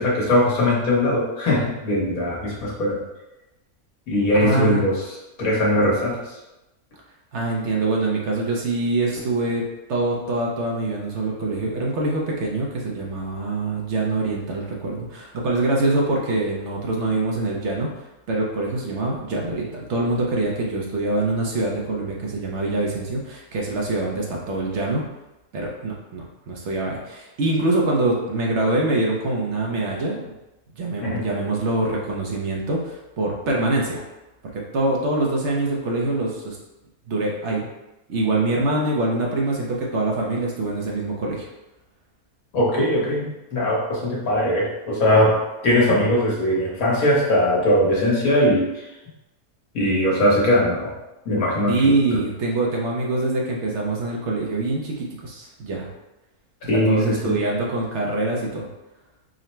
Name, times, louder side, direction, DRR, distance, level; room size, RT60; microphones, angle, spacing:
voice 1, 0.0-3.0 4.1-5.0 5.4-6.3 31.0-31.2 42.5-48.9 49.7-50.9 51.2-52.2 56.7-57.3, left 1 dB, 70° left, -4 dB, 1.5 m, -20 dB
voice 2, 4.4-4.9 7.3-9.6 9.9-17.9 18.3-25.1 25.5-30.3 30.8-34.0 34.5-36.6 37.1-37.7 38.1-41.5 51.7-55.9 56.6-58.7, right 2 dB, 60° right, -2 dB, 0.9 m, -24 dB
3.8 x 2.1 x 4.3 m, 0.99 s
omnidirectional pair, 1.6 m